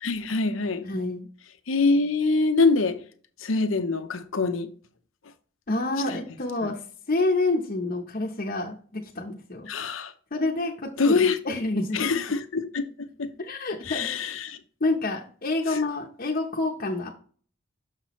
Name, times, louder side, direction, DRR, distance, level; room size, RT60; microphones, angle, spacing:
voice 1, 0.0-0.8 1.7-3.0 3.4-4.7 6.1-6.2 9.7-10.1 11.0-11.4 11.9-13.3 13.9-14.6, left 3 dB, 80° left, 0.8 m, -24 dB
voice 2, 0.8-1.3 5.7-6.8 7.1-9.7 10.3-12.1 13.4-14.1 14.8-17.1, left 2 dB, 45° left, 0.8 m, -28 dB
6.6 x 5.9 x 3.0 m
head